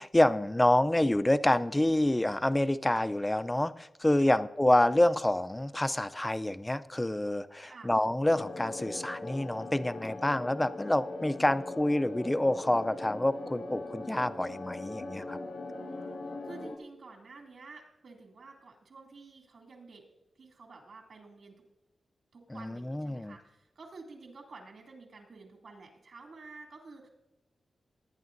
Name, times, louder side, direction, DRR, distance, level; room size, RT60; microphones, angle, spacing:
voice 1, 0.0-15.4 22.5-23.4, left 1 dB, 10° left, 13 dB, 0.4 m, -27 dB
sound 1, 8.2-16.8, left 2 dB, 85° left, 1.5 m, -40 dB
voice 2, 15.7-20.0 20.4-21.5 22.3-27.1, right 3 dB, 60° right, 2 dB, 2.4 m, -50 dB
20.0 x 9.8 x 2.6 m, 0.97 s
wide cardioid pair, 170°, 0 cm